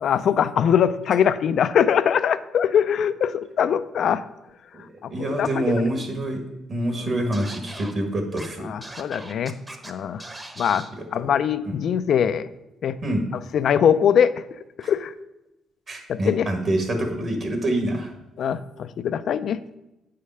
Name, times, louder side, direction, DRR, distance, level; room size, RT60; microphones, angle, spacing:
voice 1, 0.0-4.2 5.0-5.7 7.0-7.1 8.6-9.6 9.8-10.2 10.6-12.5 12.8-13.0 13.5-14.3 14.8-15.1 16.1-16.5 18.4-19.8, left 8 dB, 65° left, 14 dB, 0.4 m, -22 dB
voice 2, 4.7-6.4 6.7-8.7 11.2-11.3 11.6-11.7 13.0-13.2 14.8-14.9 15.9-18.1, right 1 dB, 45° right, 4 dB, 1.6 m, -26 dB
Scratching (performance technique), 7.3-7.9 8.4-8.5 8.8-9.9 10.2-10.9, right 1 dB, 15° right, 0.9 m, -39 dB
8.2 x 5.0 x 5.6 m, 0.94 s
cardioid pair, 90°, 0 cm